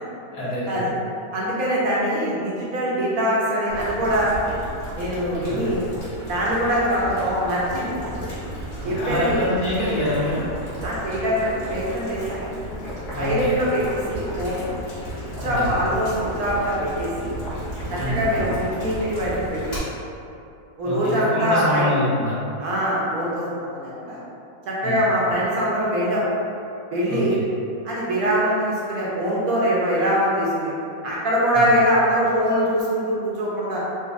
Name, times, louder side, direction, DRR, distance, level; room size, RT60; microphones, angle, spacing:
voice 1, 0.3-0.8 5.5-5.7 8.9-10.5 13.1-13.6 15.4-15.8 18.0-18.2 20.8-22.3 24.8-25.0 27.1-27.4 31.5-31.6, left 1 dB, 75° left, -9 dB, 1.6 m, -26 dB
voice 2, 1.3-4.3 5.0-5.8 6.3-8.0 8.8-9.5 10.8-12.4 13.2-14.7 15.4-17.4 17.9-19.9 20.8-21.9 22.6-24.2 24.7-26.2 26.9-27.4 27.8-30.7 31.0-33.8, equal, 65° right, -6 dB, 1.0 m, -23 dB
Boiling, 3.7-19.8, equal, 40° left, 1.4 m, -33 dB
3.9 x 2.9 x 2.4 m, 2.7 s
omnidirectional pair, 1.8 m